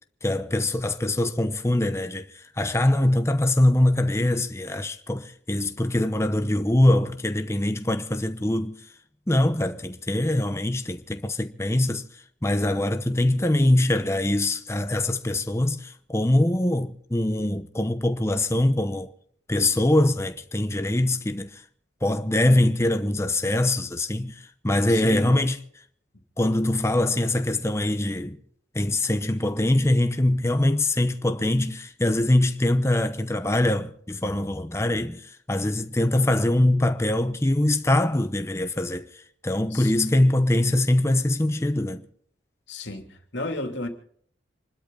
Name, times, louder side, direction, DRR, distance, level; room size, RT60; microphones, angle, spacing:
voice 1, 0.2-8.8 9.3-19.1 19.5-21.6 22.0-25.6 26.4-28.4 28.7-42.1, left 1 dB, 15° left, 0.8 m, -23 dB
voice 2, 24.9-25.4 39.7-39.9 42.7-43.1 43.3-43.9, left 1 dB, 75° left, 2.8 m, -32 dB
27.0 x 12.5 x 3.9 m
head